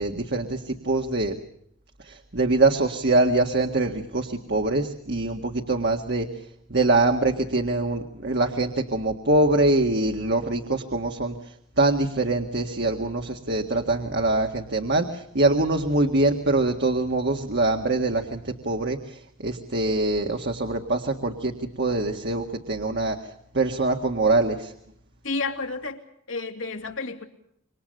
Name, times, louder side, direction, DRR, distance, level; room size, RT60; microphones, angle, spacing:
voice 1, 0.0-1.4 2.1-6.3 6.7-11.4 11.8-23.2 23.5-24.7, right 2 dB, 55° right, 1.9 m, -24 dB
voice 2, 25.2-27.2, left 3 dB, 70° left, 2.8 m, -31 dB
27.5 x 24.0 x 6.6 m
head